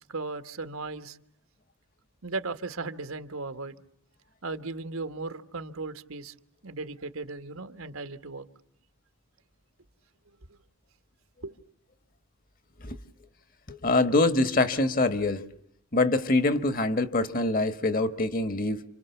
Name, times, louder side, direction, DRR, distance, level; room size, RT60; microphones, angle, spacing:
voice 1, 0.1-1.2 2.2-3.8 4.4-6.3 6.6-8.4 10.5-10.6 11.4-11.6, right 3 dB, 80° right, 1.4 m, -36 dB
voice 2, 13.7-15.4 15.9-18.8, left 2 dB, 40° left, 1.4 m, -24 dB
29.0 x 26.5 x 7.1 m
head